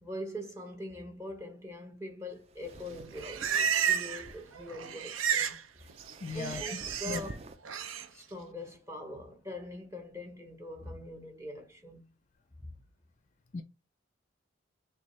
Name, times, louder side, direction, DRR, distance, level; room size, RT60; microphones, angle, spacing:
voice 1, 0.0-5.9 6.3-7.3 8.1-12.1 12.6-12.7, left 1 dB, 15° right, 1.0 m, -43 dB
sound 1, 2.3-7.6, right 2 dB, 30° right, 0.4 m, -50 dB
Livestock farm animals working animals, 2.9-4.3 4.6-5.6 5.9-7.2 7.7-8.1, right 8 dB, 80° right, 0.5 m, -32 dB
voice 2, 6.2-6.8 7.1-7.4 13.5-13.6, left 4 dB, 35° left, 0.4 m, -37 dB
6.0 x 2.4 x 3.2 m
head